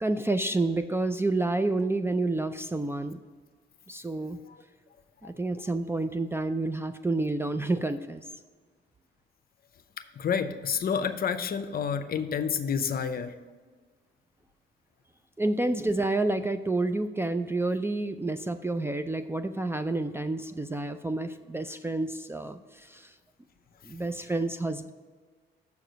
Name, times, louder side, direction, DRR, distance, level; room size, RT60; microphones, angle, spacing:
voice 1, 0.0-3.2 3.9-4.4 5.2-8.2 15.4-23.1 23.8-24.9, right 2 dB, 10° right, 10 dB, 0.4 m, -29 dB
voice 2, 10.2-13.3, left 7 dB, 50° left, 10 dB, 0.6 m, -29 dB
6.9 x 4.9 x 6.6 m, 1.5 s
cardioid pair, 90°, 20 cm